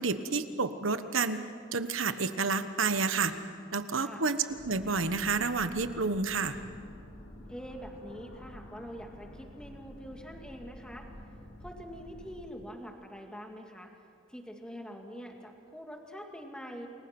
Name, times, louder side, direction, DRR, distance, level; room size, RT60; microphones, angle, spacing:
voice 1, 0.0-1.4 1.7-3.3 3.7-6.6, right 4 dB, 75° right, 10 dB, 1.2 m, -30 dB
sound 1, 4.5-12.4, left 1 dB, 85° left, 6.2 m, -49 dB
voice 2, 7.5-11.1 11.6-13.9 14.3-16.9, equal, 5° left, 2 dB, 2.3 m, -45 dB
29.0 x 21.5 x 6.1 m, 2.3 s
head